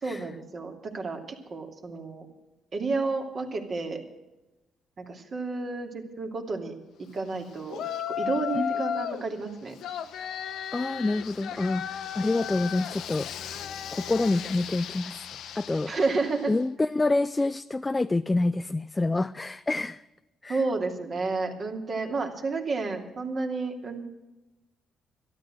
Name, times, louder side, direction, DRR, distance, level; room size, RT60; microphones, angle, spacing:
voice 1, 0.0-2.3 2.7-4.0 5.0-9.7 15.9-16.5 20.5-24.0, right 3 dB, 45° right, 3 dB, 2.7 m, -31 dB
Yell, 7.7-9.3 9.8-16.5, left 9 dB, 75° left, 0.9 m, -35 dB
voice 2, 10.7-13.3 13.9-15.2 15.6-15.9 16.5-20.0 20.4-20.6, left 2 dB, 20° left, 12 dB, 0.4 m, -27 dB
13.0 x 12.0 x 7.8 m, 1.0 s
cardioid pair, 90°, 0 cm